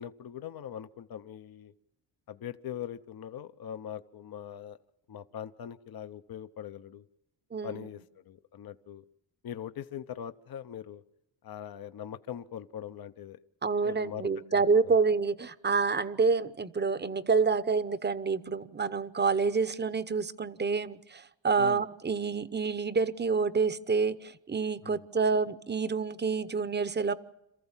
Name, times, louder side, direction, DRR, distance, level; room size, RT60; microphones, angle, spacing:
voice 1, 0.0-1.7 2.3-4.8 5.1-7.0 7.6-8.0 8.3-9.0 9.4-11.0 11.4-13.4 13.8-15.0 21.6-21.8 24.8-25.0, left 9 dB, 55° left, 11 dB, 0.8 m, -41 dB
voice 2, 7.5-7.9 13.6-27.1, right 4 dB, 25° right, 15 dB, 0.8 m, -28 dB
27.5 x 14.5 x 7.3 m, 0.90 s
cardioid pair, 90°, 44 cm